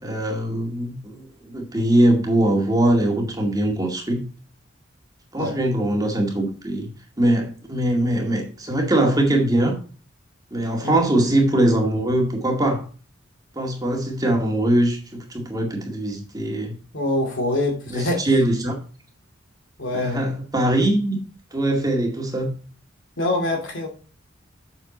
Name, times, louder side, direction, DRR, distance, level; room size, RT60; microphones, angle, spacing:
voice 1, 0.0-4.3 5.3-6.9 7.2-9.8 10.5-12.8 13.6-16.7 17.9-18.7 19.9-21.2 21.5-22.5, right 1 dB, 20° right, 1 dB, 2.1 m, -21 dB
voice 2, 16.9-18.3 19.8-20.2 23.2-23.9, left 1 dB, 65° left, 1 dB, 2.7 m, -25 dB
7.6 x 7.0 x 4.3 m, 0.38 s
head